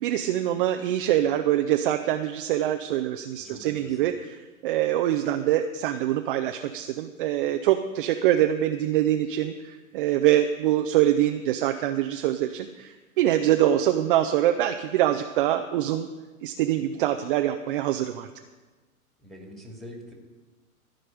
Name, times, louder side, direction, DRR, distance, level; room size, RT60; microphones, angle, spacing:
voice 1, 0.0-4.4 4.6-16.1 16.4-18.3, right 12 dB, 35° right, 7 dB, 0.5 m, -24 dB
voice 2, 3.4-4.1 19.2-20.1, equal, ahead, 0 dB, 2.4 m, -44 dB
15.0 x 5.3 x 9.2 m, 1.3 s
hypercardioid pair, 125°, 45 cm